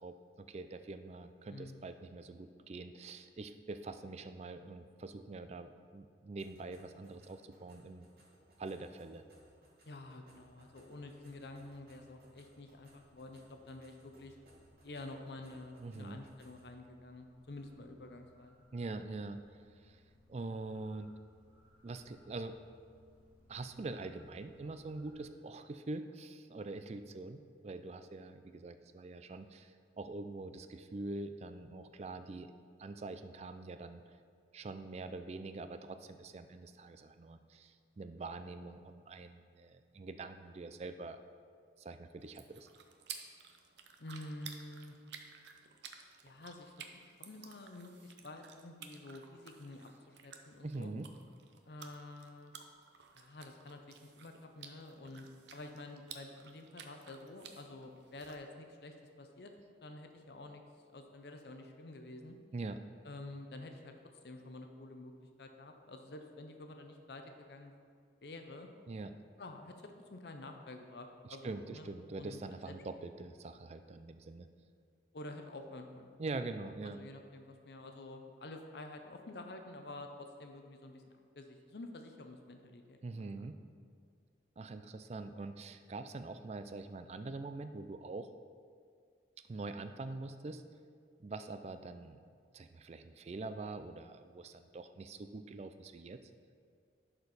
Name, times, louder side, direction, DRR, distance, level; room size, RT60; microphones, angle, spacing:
voice 1, 0.0-8.1 8.6-9.2 15.8-16.2 18.7-19.4 19.8-20.0 20.3-21.1 21.8-22.6 23.5-32.5 32.8-34.0 34.5-41.2 41.8-42.7 50.6-51.1 62.5-62.8 68.9-69.2 71.2-74.5 76.2-77.0 83.0-83.6 84.6-88.3 89.5-90.6 91.2-92.2 92.5-96.2, right 3 dB, 35° right, 9 dB, 0.3 m, -44 dB
voice 2, 1.5-1.8 9.9-14.4 14.8-18.6 44.0-44.9 46.2-50.9 51.7-52.5 53.1-59.5 59.8-60.6 60.9-62.4 63.0-63.9 64.2-65.1 65.4-67.8 68.2-68.7 69.4-71.9 72.2-72.7 75.1-76.3 76.8-81.0 81.4-83.3, left 2 dB, 65° left, 5 dB, 0.6 m, -49 dB
sound 1, 6.4-16.7, right 1 dB, 55° right, 1.6 m, -66 dB
sound 2, 10.4-25.2, left 1 dB, 10° right, 1.5 m, -67 dB
sound 3, 42.2-58.4, right 7 dB, 80° right, 0.6 m, -54 dB
11.0 x 4.4 x 4.1 m, 2.1 s
head